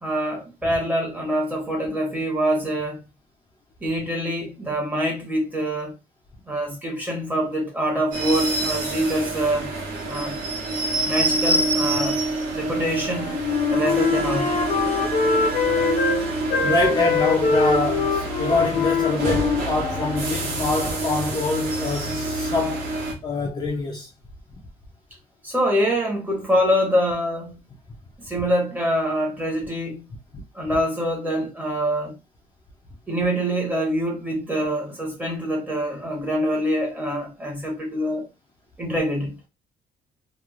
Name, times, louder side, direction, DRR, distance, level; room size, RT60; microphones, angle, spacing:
voice 1, 0.0-3.0 3.8-5.9 6.5-9.7 10.1-10.3 11.1-12.2 12.5-13.3 13.7-14.5 25.4-27.6 28.2-30.0 30.5-32.1 33.1-38.3 38.8-39.3, equal, 10° right, 1.0 m, -25 dB
sound 1, 8.1-23.1, right 2 dB, 85° right, 1.3 m, -26 dB
Wind instrument woodwind instrument, 13.1-16.2 16.5-20.3, left 5 dB, 65° left, 0.7 m, -23 dB
voice 2, 16.5-22.9 23.2-24.1 30.3-30.4, left 3 dB, 25° left, 0.5 m, -25 dB
3.0 x 2.3 x 2.4 m
cardioid pair, 165°, 15 cm